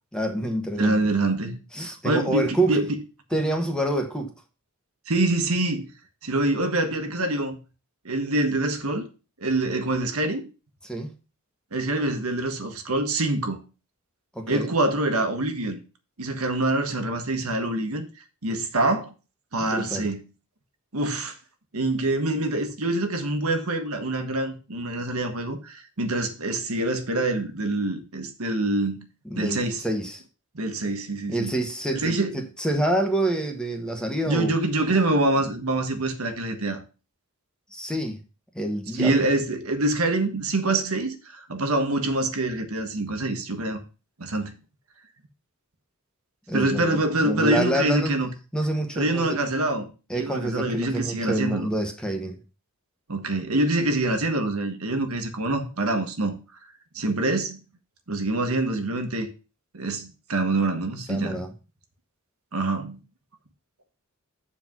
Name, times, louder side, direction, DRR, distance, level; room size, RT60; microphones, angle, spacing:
voice 1, 0.1-1.0 1.7-2.8 3.3-4.3 10.8-11.1 14.3-14.7 19.6-20.1 29.2-30.2 31.3-34.5 35.4-35.5 37.7-38.2 38.5-39.2 46.5-48.2 48.5-49.4 50.1-52.4 61.1-61.5, right 1 dB, 5° left, 1.3 m, -27 dB
voice 2, 0.8-2.9 5.1-5.9 6.2-7.6 8.0-9.1 9.4-10.4 11.7-13.6 14.5-15.8 16.2-18.1 18.4-19.1 19.5-20.2 20.9-21.3 21.7-29.0 29.3-29.8 30.5-31.6 31.9-32.3 34.3-36.8 39.0-43.8 44.2-44.5 46.5-48.3 48.9-51.7 53.1-56.3 56.9-57.6 58.1-59.3 59.7-61.4 62.5-63.0, right 2 dB, 80° right, 1.4 m, -25 dB
7.7 x 4.5 x 5.9 m
head